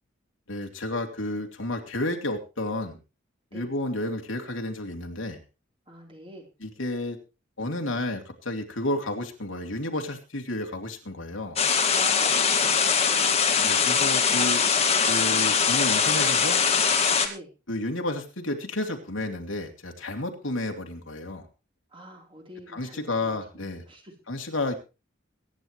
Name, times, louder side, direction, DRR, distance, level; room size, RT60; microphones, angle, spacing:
voice 1, 0.5-3.0 3.5-5.4 6.6-7.2 7.6-11.6 13.6-14.6 15.1-16.6 17.7-21.5 22.7-23.8 24.3-24.7, left 1 dB, 80° left, 2 dB, 2.9 m, -31 dB
voice 2, 5.9-6.5 11.9-13.4 17.2-17.5 21.9-24.1, equal, 25° right, 1 dB, 3.9 m, -46 dB
sound 1, 11.6-17.3, left 6 dB, 30° left, 2.0 m, -22 dB
23.0 x 10.0 x 3.2 m, 0.30 s
head